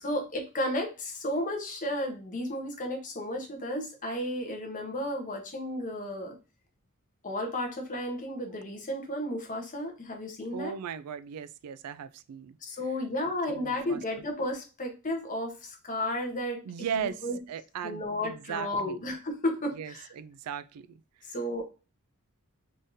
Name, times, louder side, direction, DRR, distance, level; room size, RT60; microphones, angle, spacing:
voice 1, 0.0-6.4 7.2-10.7 12.6-16.6 16.9-17.4 17.8-20.1 21.2-21.6, left 1 dB, 35° left, 1.0 m, -33 dB
voice 2, 10.5-12.6 13.2-14.0 16.6-19.0 19.7-21.3, right 8 dB, 85° right, 0.3 m, -38 dB
3.7 x 3.6 x 2.7 m
head